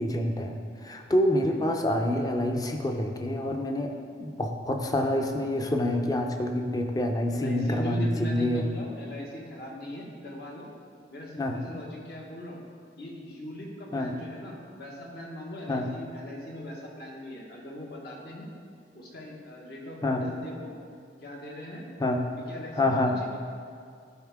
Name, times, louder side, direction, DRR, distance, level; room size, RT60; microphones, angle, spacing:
voice 1, 0.0-3.9 4.2-8.6 11.4-11.6 13.9-14.1 15.7-15.9 20.0-20.2 22.0-22.2 22.8-23.1, left 1 dB, 20° left, 3 dB, 0.6 m, -27 dB
voice 2, 7.3-10.7 11.1-12.6 13.0-18.5 18.9-20.7 21.2-21.8 22.5-23.0 23.3-23.4, left 1 dB, 60° left, -2 dB, 1.4 m, -40 dB
11.5 x 4.6 x 3.6 m, 2.3 s
head